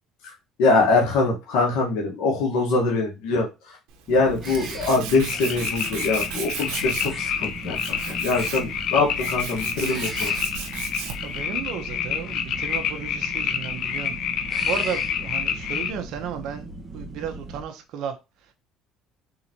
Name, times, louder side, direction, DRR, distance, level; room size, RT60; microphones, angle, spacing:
voice 1, 0.6-3.8 4.1-10.3, left 3 dB, 90° left, 1.6 m, -23 dB
Tools, 3.9-11.4, right 7 dB, 90° right, 1.0 m, -36 dB
sound 1, 4.1-17.6, right 2 dB, 10° right, 1.3 m, -38 dB
sound 2, 5.1-15.9, left 8 dB, 60° left, 0.6 m, -28 dB
voice 2, 11.2-16.7 16.9-18.2, right 8 dB, 70° right, 0.9 m, -34 dB
3.9 x 3.9 x 3.0 m
cardioid pair, 115°, 0 cm